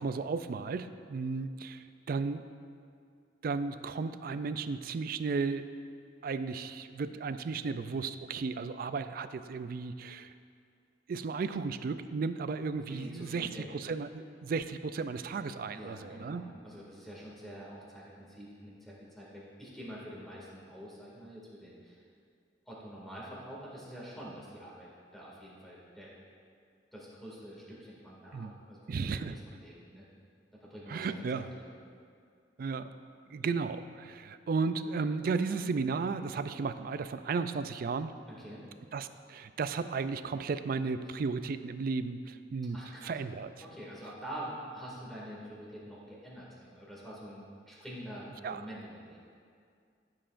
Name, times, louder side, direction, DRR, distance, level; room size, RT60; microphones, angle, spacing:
voice 1, 0.0-2.4 3.4-5.7 6.2-10.3 11.1-16.4 28.3-28.5 28.9-29.4 30.9-31.5 32.6-32.9 33.3-38.2 38.9-43.5 48.4-48.6, right 4 dB, 50° right, 11 dB, 0.3 m, -34 dB
voice 2, 12.9-13.7 15.7-22.0 22.7-26.1 26.9-30.0 30.6-31.7 38.3-38.6 42.7-43.1 43.6-49.2, equal, ahead, -7 dB, 2.2 m, -46 dB
14.5 x 7.7 x 2.5 m, 2.3 s
head